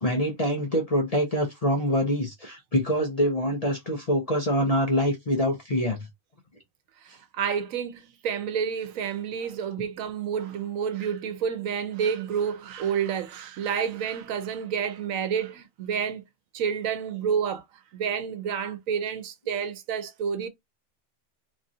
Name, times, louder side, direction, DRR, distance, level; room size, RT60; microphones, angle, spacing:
voice 1, 0.0-6.1, equal, 40° left, 0.6 m, -25 dB
voice 2, 7.0-16.2 16.5-17.7 17.9-20.5, right 7 dB, 85° right, 1.0 m, -29 dB
3.0 x 2.4 x 2.6 m
omnidirectional pair, 1.4 m